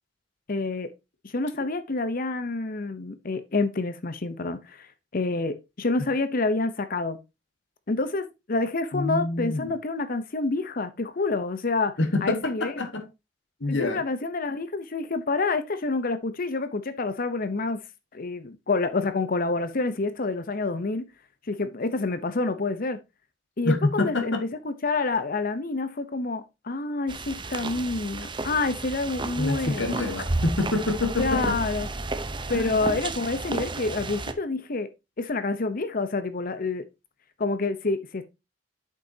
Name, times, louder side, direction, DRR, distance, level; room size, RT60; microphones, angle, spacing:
voice 1, 0.5-0.9 1.2-4.9 5.1-7.2 7.9-11.9 12.2-12.7 13.7-17.8 18.1-21.1 21.5-23.0 23.6-29.9 31.2-31.9 32.5-34.9 35.2-36.8 37.4-38.2, left 3 dB, 50° left, 0.8 m, -28 dB
voice 2, 8.9-9.7 12.0-13.1 13.6-14.0 23.6-24.4 29.4-31.6 32.5-32.8, left 2 dB, 85° left, 1.7 m, -26 dB
sound 1, 27.1-34.3, right 2 dB, 25° right, 0.8 m, -32 dB
8.4 x 6.8 x 2.8 m
head